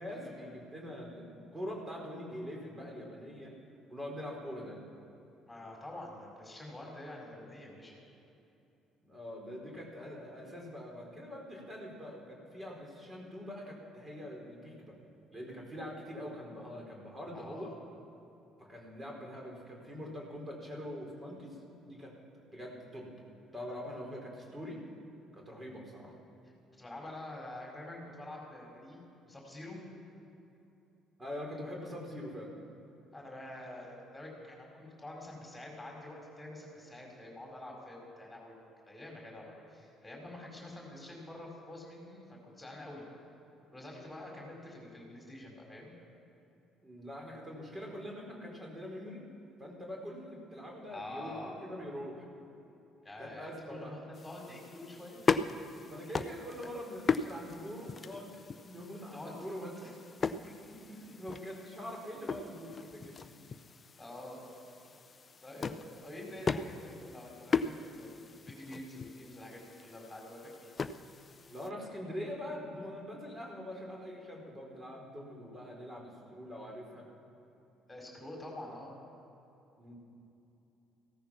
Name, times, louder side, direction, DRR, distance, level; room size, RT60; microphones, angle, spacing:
voice 1, 0.0-3.6 3.9-4.9 9.0-15.0 15.3-17.7 18.6-22.2 22.5-23.2 23.5-24.8 25.3-26.2 31.2-32.6 46.8-49.3 49.6-52.3 53.2-53.9 55.8-59.8 61.0-63.3 71.5-77.1 79.8-79.9, equal, 20° right, -1 dB, 4.6 m, -44 dB
voice 2, 5.5-8.0 17.3-17.7 26.8-29.8 33.1-38.6 38.9-43.0 43.7-45.9 50.9-51.6 53.0-55.3 59.1-59.9 60.4-60.9 64.0-64.4 65.4-70.7 77.9-78.9, left 1 dB, 10° left, -1 dB, 4.8 m, -47 dB
sound 1, 54.1-71.7, left 5 dB, 35° left, 0.6 m, -38 dB
15.5 x 13.5 x 6.0 m, 2.8 s
figure-of-eight pair, 50°, 0 cm